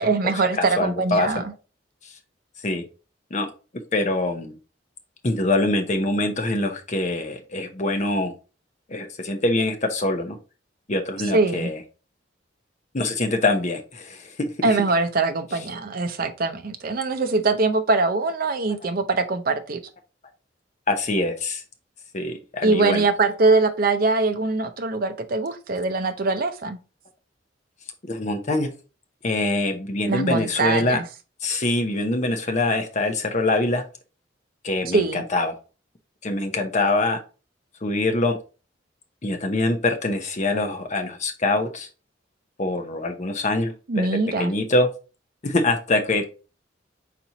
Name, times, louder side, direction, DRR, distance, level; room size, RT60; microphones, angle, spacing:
voice 1, 0.0-1.5 11.3-11.7 14.6-19.8 22.6-26.8 30.1-31.0 34.9-35.2 43.9-44.5, right 3 dB, 50° right, 0.6 m, -22 dB
voice 2, 0.6-1.4 2.6-2.8 3.3-3.5 3.9-4.6 5.2-8.3 8.9-10.4 10.9-11.8 12.9-14.8 20.9-21.6 22.1-23.0 28.0-28.7 29.2-31.0 31.4-33.8 34.6-35.5 36.2-37.2 37.8-38.4 39.2-41.9 42.6-44.9 45.4-46.3, left 2 dB, 40° left, 0.7 m, -24 dB
4.3 x 4.2 x 2.8 m
head